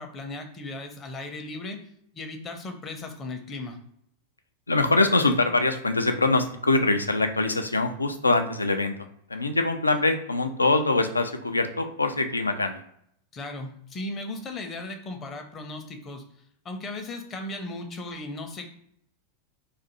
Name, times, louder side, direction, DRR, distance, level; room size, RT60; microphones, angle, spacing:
voice 1, 0.0-1.9 2.1-3.8 13.3-16.2 16.6-18.7, left 2 dB, 25° left, 5 dB, 0.6 m, -36 dB
voice 2, 4.7-12.8, left 2 dB, 80° left, 7 dB, 0.3 m, -24 dB
2.6 x 2.4 x 4.0 m, 0.69 s
figure-of-eight pair, 90°, 0 cm